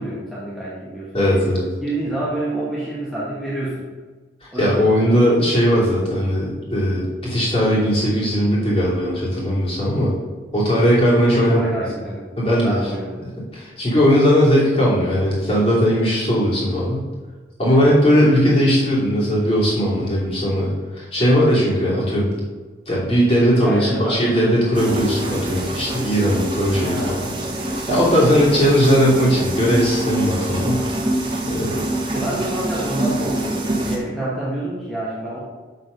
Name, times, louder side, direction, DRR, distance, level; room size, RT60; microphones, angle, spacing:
voice 1, 0.0-1.4 1.8-3.9 4.5-5.6 11.3-12.3 12.6-13.3 17.7-18.0 23.6-24.2 26.8-27.4 28.0-28.3 32.1-35.4, right 1 dB, ahead, -8 dB, 1.4 m, -28 dB
voice 2, 1.1-1.6 4.4-10.1 10.5-11.6 12.4-12.8 13.5-17.0 17.6-22.3 22.9-27.2 27.9-30.8 31.5-31.8, equal, 30° left, -6 dB, 3.0 m, -18 dB
sound 1, 24.7-34.0, right 1 dB, 25° right, 1.2 m, -25 dB
7.2 x 6.6 x 5.3 m, 1.3 s
head